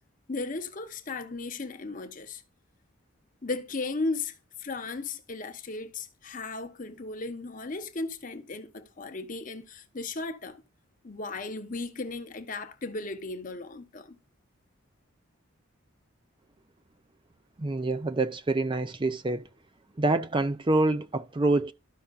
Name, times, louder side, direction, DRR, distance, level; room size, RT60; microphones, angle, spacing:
voice 1, 0.3-2.4 3.4-4.3 4.6-10.6 11.0-14.2, left 3 dB, 40° left, 0.9 m, -36 dB
voice 2, 17.6-19.4 20.0-21.7, right 2 dB, 25° right, 0.5 m, -26 dB
13.0 x 5.6 x 2.4 m
head